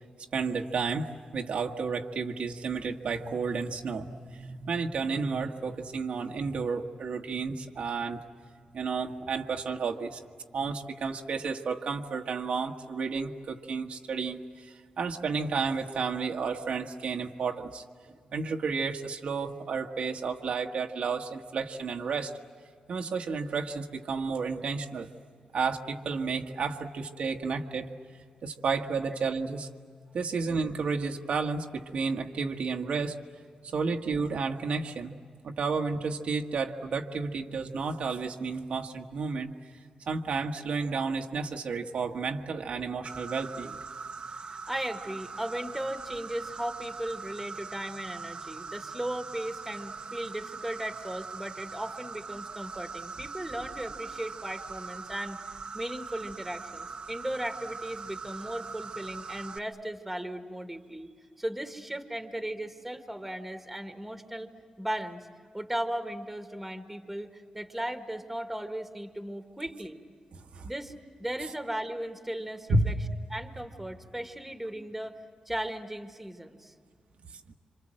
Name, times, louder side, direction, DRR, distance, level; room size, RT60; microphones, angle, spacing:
voice 1, 0.3-8.2 8.6-10.2 10.5-17.8 18.3-22.3 22.9-25.1 25.5-27.9 28.4-29.7 30.1-33.1 33.6-39.8 40.1-43.8 70.4-70.7 72.7-72.9, right 4 dB, 70° right, 2 dB, 1.5 m, -32 dB
Insect, 43.0-59.6, right 4 dB, 50° right, 1.0 m, -41 dB
voice 2, 44.2-55.4 55.7-61.1 61.4-64.5 64.8-65.3 65.5-70.0 70.6-70.9 71.2-73.0 73.3-75.2 75.5-76.7, right 1 dB, 5° right, 6 dB, 1.9 m, -36 dB
27.5 x 26.5 x 7.7 m, 2.1 s
wide cardioid pair, 105°, 2 cm